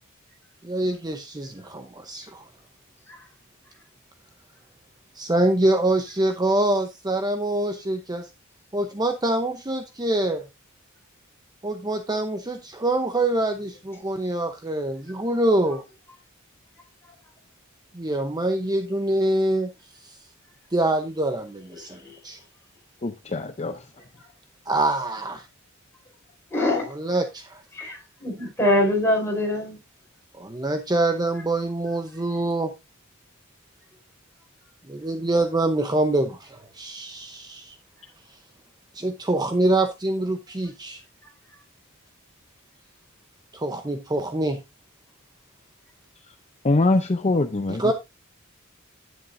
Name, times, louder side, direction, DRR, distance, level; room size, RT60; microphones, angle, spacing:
voice 1, 0.6-2.4 5.2-8.3 8.7-10.4 11.6-15.8 17.9-19.7 20.0-20.1 20.7-22.0 22.2-22.4 24.7-25.5 26.9-27.6 30.4-32.7 34.9-37.7 38.9-41.0 43.5-44.6 47.7-47.9, right 1 dB, 20° right, 0.8 m, -25 dB
voice 2, 23.0-23.8 46.6-47.9, left 2 dB, 30° left, 0.6 m, -23 dB
voice 3, 26.5-26.9 27.7-29.8, left 1 dB, 10° left, 5.0 m, -23 dB
11.0 x 9.5 x 2.6 m
head